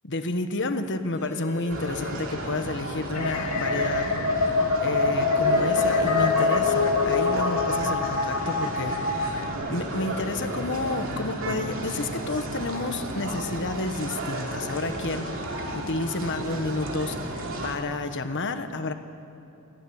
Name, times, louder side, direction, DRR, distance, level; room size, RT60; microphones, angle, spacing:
voice 1, 0.0-4.2 4.8-15.3 15.7-18.9, left 2 dB, 55° left, 8 dB, 1.3 m, -30 dB
sound 1, 1.1-2.5 5.5-6.8 9.8-11.1 14.1-15.5, left 2 dB, 35° right, 6.1 m, -42 dB
sound 2, 1.7-17.7, right 1 dB, 60° right, 2.8 m, -33 dB
sound 3, 3.1-9.5, left 4 dB, 85° left, 2.2 m, -24 dB
19.0 x 14.5 x 9.9 m, 3.0 s
head